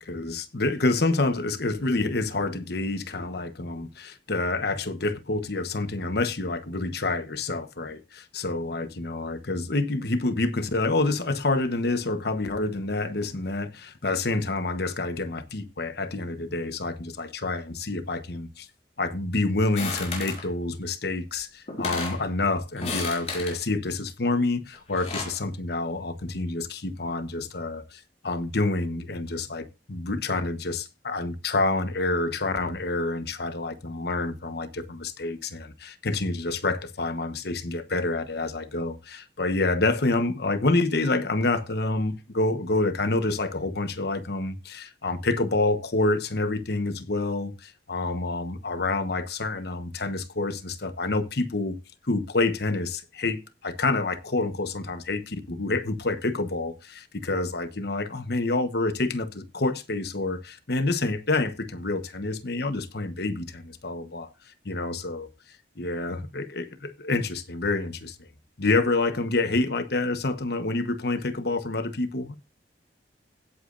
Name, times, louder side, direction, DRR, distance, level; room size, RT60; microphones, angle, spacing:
voice 1, 0.0-18.7 19.0-51.8 52.0-64.3 64.6-65.3 65.8-68.3 68.6-72.3, left 2 dB, 60° left, 1.1 m, -28 dB
sound 1, 19.7-20.4 21.3-21.4 21.7-22.2 22.8-23.6 24.7-25.4, left 4 dB, 40° left, 5.2 m, -33 dB
16.0 x 8.5 x 2.6 m
head